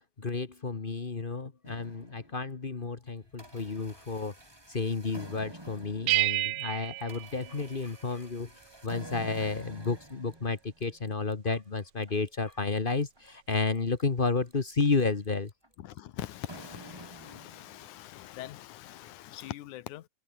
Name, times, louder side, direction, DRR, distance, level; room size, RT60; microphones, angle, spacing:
voice 1, 0.2-4.3 4.7-8.5 8.8-15.5, left 4 dB, 45° left, 0.6 m, -31 dB
sound 1, 1.6-2.6 3.1-18.1, right 1 dB, 10° right, 4.3 m, -50 dB
sound 2, 6.1-8.3, right 19 dB, 80° right, 1.7 m, -31 dB
voice 2, 15.8-20.1, left 14 dB, 90° left, 2.5 m, -43 dB
omnidirectional pair, 3.4 m